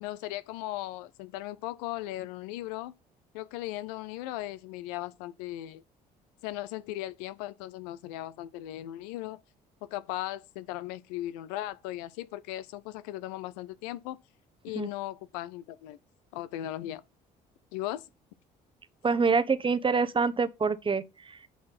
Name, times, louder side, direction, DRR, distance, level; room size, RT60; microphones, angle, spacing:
voice 1, 0.0-2.9 3.3-5.8 6.4-9.4 9.8-14.2 14.6-16.0 16.3-17.0 17.7-18.0, left 15 dB, 70° left, 0.7 m, -37 dB
voice 2, 19.0-21.5, right 5 dB, 25° right, 1.1 m, -26 dB
9.2 x 4.6 x 4.3 m
hypercardioid pair, 50°, 21 cm